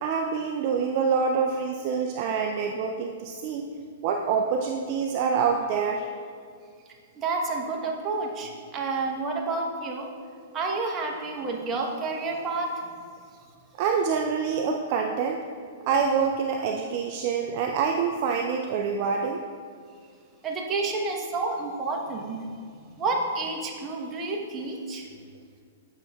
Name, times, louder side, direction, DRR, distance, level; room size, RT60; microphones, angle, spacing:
voice 1, 0.0-3.7 4.0-6.1 13.7-15.4 15.9-19.4, right 6 dB, 50° right, 2 dB, 0.4 m, -26 dB
voice 2, 7.2-10.1 10.5-12.9 20.4-22.5 23.0-25.1, right 3 dB, 25° right, 0 dB, 1.0 m, -30 dB
8.7 x 6.2 x 2.3 m, 2.2 s
hypercardioid pair, 120°, 0 cm